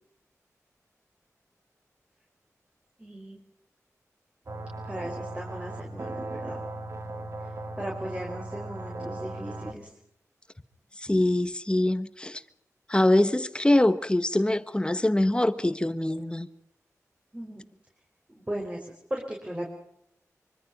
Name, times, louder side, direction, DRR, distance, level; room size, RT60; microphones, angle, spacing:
voice 1, 3.0-3.4 4.8-6.6 7.4-9.9 17.3-17.7 18.3-19.7, equal, 20° right, 5.4 m, -37 dB
sound 1, 4.5-9.7, right 2 dB, 55° right, 2.2 m, -37 dB
voice 2, 11.0-12.4 12.9-16.5, left 1 dB, 15° left, 1.4 m, -24 dB
25.0 x 24.0 x 5.6 m
wide cardioid pair, 65°, 6 cm